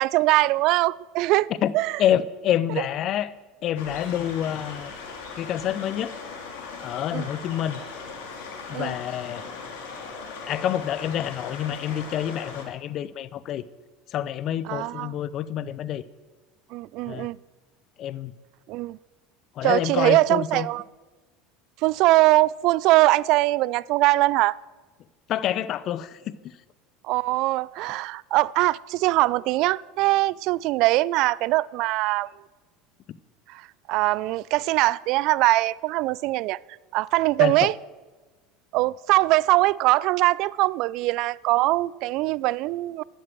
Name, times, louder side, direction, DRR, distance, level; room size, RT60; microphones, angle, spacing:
voice 1, 0.0-1.5 1.7-2.0 7.1-7.3 8.7-8.9 14.6-15.1 16.7-17.4 18.7-19.0 19.6-20.8 21.8-24.6 27.0-32.3 33.5-36.6 36.9-37.8 38.7-43.0, right 19 dB, 60° right, 0.3 m, -22 dB
voice 2, 2.0-3.3 3.6-4.9 5.4-6.1 6.8-7.8 8.7-9.4 10.5-13.6 14.1-16.0 17.1-17.3 18.0-18.3 19.6-20.7 25.3-26.3 37.4-37.7, left 11 dB, 50° left, 0.7 m, -27 dB
sound 1, 3.8-12.6, left 4 dB, 70° left, 2.9 m, -39 dB
12.5 x 11.0 x 6.1 m
hypercardioid pair, 75°, 0 cm